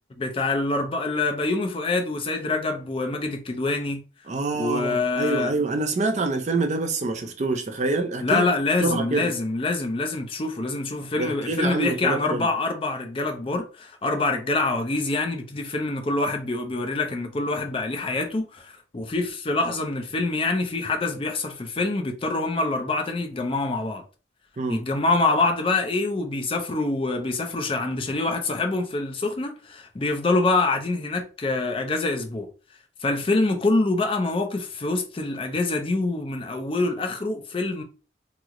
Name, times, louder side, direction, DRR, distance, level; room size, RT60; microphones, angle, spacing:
voice 1, 0.2-4.0 4.5-5.5 8.2-24.0 24.7-32.5 33.0-37.8, left 3 dB, 30° left, 0.4 m, -25 dB
voice 2, 4.3-8.5 8.8-9.3 11.2-12.5 24.6-24.8, right 3 dB, 40° right, 0.4 m, -26 dB
3.0 x 2.0 x 3.6 m
head